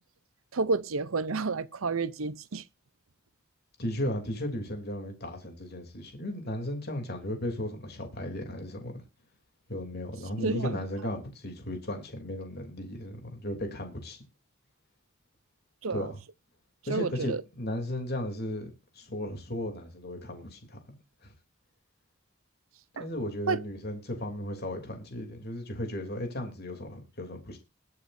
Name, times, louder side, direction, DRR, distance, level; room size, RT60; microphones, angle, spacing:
voice 1, 0.5-2.6 10.4-10.8 15.8-16.0 16.9-17.4 23.0-23.1 23.5-23.6, right 4 dB, 85° right, 0.8 m, -30 dB
voice 2, 3.8-9.0 9.7-14.2 15.9-16.2 16.9-21.0 21.2-21.3 23.0-27.6, left 1 dB, 50° left, 3.3 m, -35 dB
22.0 x 8.3 x 2.7 m
head